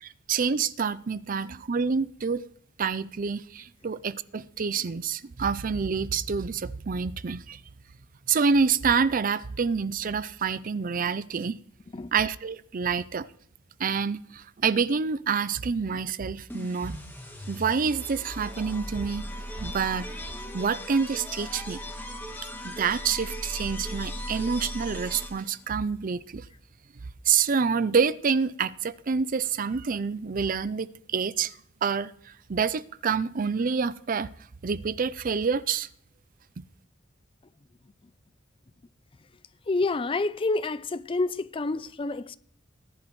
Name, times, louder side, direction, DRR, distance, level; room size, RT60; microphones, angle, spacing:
voice 1, 0.0-2.5 2.8-7.6 8.3-11.6 12.1-13.3 13.8-17.0 17.5-19.2 19.6-20.1 20.5-21.8 22.6-26.5 27.3-34.3 34.6-35.9, right 5 dB, 45° right, 0.5 m, -27 dB
sound 1, 16.5-25.6, equal, 10° left, 2.2 m, -38 dB
voice 2, 39.7-42.4, left 3 dB, 30° left, 0.5 m, -28 dB
18.5 x 11.0 x 3.1 m
head